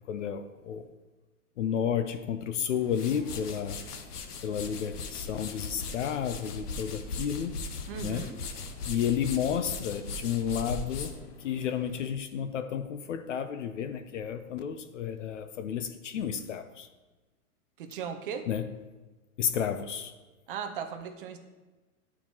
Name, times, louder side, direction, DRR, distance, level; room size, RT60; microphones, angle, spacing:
voice 1, 0.1-0.8 1.6-3.8 4.4-7.6 8.0-8.3 8.9-11.1 11.4-16.9 18.5-18.7 19.4-20.1, left 8 dB, 55° left, 10 dB, 0.5 m, -31 dB
sound 1, 2.7-12.1, left 3 dB, 90° left, 0.9 m, -39 dB
voice 2, 7.9-8.3 17.8-18.5 20.5-21.4, right 7 dB, 35° right, 6 dB, 0.6 m, -37 dB
10.5 x 4.5 x 2.8 m, 1.2 s
hypercardioid pair, 155°, 45 cm